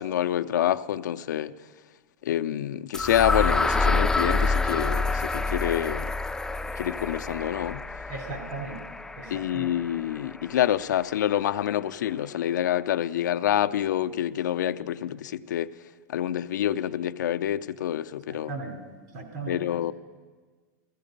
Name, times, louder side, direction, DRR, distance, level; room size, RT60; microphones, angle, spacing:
voice 1, 0.0-1.5 2.2-6.1 6.8-7.8 9.3-15.7 16.1-18.5 19.5-19.9, left 11 dB, 85° left, 0.5 m, -27 dB
sound 1, 2.9-10.9, left 3 dB, 5° left, 0.4 m, -28 dB
voice 2, 8.1-8.8 9.2-9.6 18.3-18.8 19.1-19.6, right 3 dB, 65° right, 3.5 m, -37 dB
16.0 x 15.0 x 5.3 m
hypercardioid pair, 115°, 10 cm